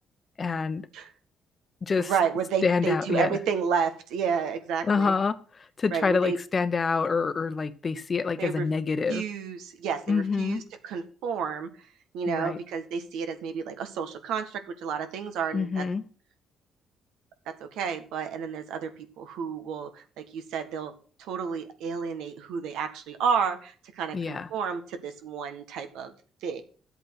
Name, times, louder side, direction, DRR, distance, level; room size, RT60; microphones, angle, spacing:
voice 1, 0.4-0.8 1.8-2.1 2.6-3.4 4.8-5.4 5.8-9.2 10.1-10.6 12.3-12.6 15.5-16.0 24.1-24.5, left 5 dB, 35° left, 13 dB, 1.0 m, -26 dB
voice 2, 2.0-5.1 5.9-6.4 8.4-8.6 9.1-11.7 12.1-15.8 17.5-20.9 21.2-26.1 26.4-26.6, right 6 dB, 90° right, 8 dB, 1.7 m, -31 dB
11.5 x 8.1 x 6.0 m, 0.40 s
cardioid pair, 90°, 0 cm